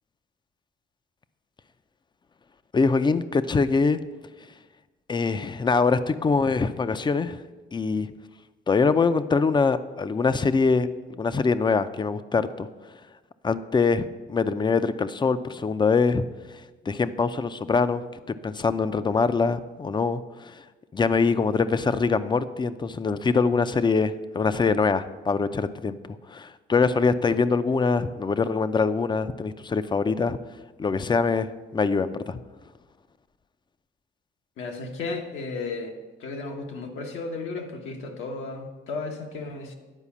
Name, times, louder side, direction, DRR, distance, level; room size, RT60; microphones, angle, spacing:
voice 1, 2.7-4.0 5.1-7.4 7.7-8.1 8.7-10.9 11.2-12.7 13.4-16.6 16.9-20.6 20.9-26.0 26.3-30.4 30.8-32.4, left 4 dB, 25° left, 13 dB, 0.5 m, -24 dB
voice 2, 34.6-35.9 36.2-39.8, left 3 dB, 80° left, 2 dB, 1.3 m, -34 dB
9.9 x 4.8 x 7.2 m, 1.3 s
cardioid pair, 90°, 20 cm